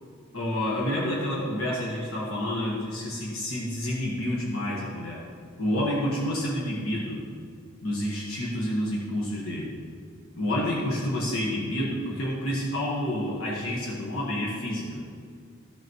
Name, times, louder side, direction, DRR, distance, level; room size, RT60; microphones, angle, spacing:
voice 1, 0.3-5.2 5.6-7.2 7.8-9.7 10.3-15.0, left 1 dB, 70° left, -5 dB, 1.5 m, -29 dB
14.0 x 5.9 x 3.1 m, 2.1 s
head